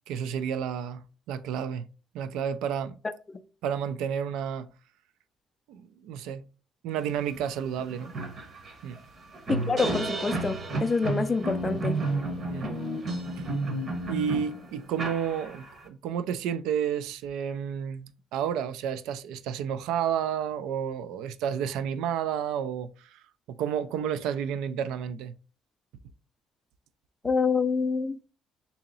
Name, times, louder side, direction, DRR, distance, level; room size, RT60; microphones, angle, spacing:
voice 1, 0.1-1.9 2.1-3.0 3.6-4.7 5.7-6.4 6.8-8.1 8.8-9.0 12.5-12.7 13.4-13.5 14.1-23.2 23.6-25.3, right 8 dB, 90° right, 0.3 m, -31 dB
sound 1, 7.4-7.5 7.8-15.8, right 2 dB, 40° right, 0.8 m, -32 dB
voice 2, 9.5-12.0 27.2-28.2, left 4 dB, 25° left, 0.3 m, -27 dB
2.9 x 2.8 x 3.9 m
cardioid pair, 130°, 0 cm